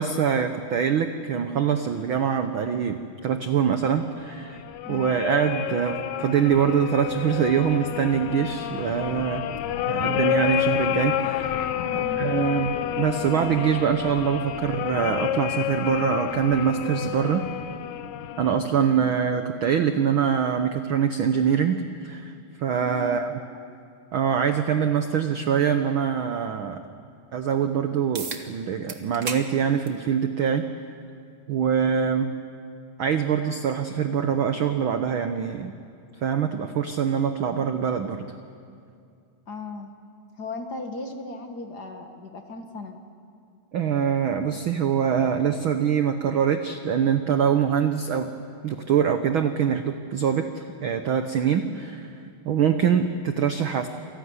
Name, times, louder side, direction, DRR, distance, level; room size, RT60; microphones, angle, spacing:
voice 1, 0.0-4.6 4.9-9.5 9.9-11.7 11.9-17.4 18.4-22.3 22.6-23.3 24.1-26.8 27.3-30.7 31.5-32.3 33.0-35.7 36.2-38.2 43.7-48.3 48.6-52.1 52.4-53.9, right 7 dB, 75° right, 8 dB, 1.1 m, -24 dB
sound 1, 4.2-18.6, left 11 dB, 75° left, 2.2 m, -29 dB
voice 2, 4.9-5.2 9.7-10.0 11.8-12.2 22.8-23.7 39.5-39.9 40.4-43.0, left 2 dB, 40° left, 4 dB, 1.5 m, -37 dB
sound 2, 28.1-28.4 28.9-29.5 29.9-30.0 31.1-31.2 36.1-36.2, right 4 dB, 45° right, 1.0 m, -33 dB
27.5 x 18.0 x 9.7 m, 2.4 s
omnidirectional pair, 3.6 m